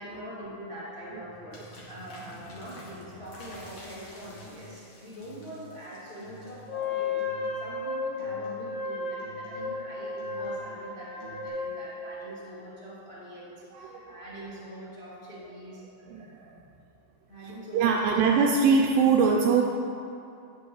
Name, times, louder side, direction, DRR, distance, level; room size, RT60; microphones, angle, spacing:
voice 1, 0.0-16.0 17.3-18.4, equal, 25° left, -9 dB, 1.5 m, -43 dB
sound 1, 1.5-7.0, left 1 dB, 50° left, 2.0 m, -51 dB
sound 2, 3.5-3.8 4.2-4.9 5.2-5.9 6.2-6.8 7.2-7.9 8.2-8.8 9.2-9.9 10.2-10.9 11.2-11.5, equal, 65° left, 3.7 m, -50 dB
Wind instrument woodwind instrument, 6.7-12.3, left 4 dB, 85° left, 1.5 m, -34 dB
voice 2, 13.7-14.2 16.1-16.6 17.7-19.6, right 5 dB, 85° right, 2 dB, 2.5 m, -23 dB
13.0 x 9.4 x 3.1 m, 2.6 s
omnidirectional pair, 5.3 m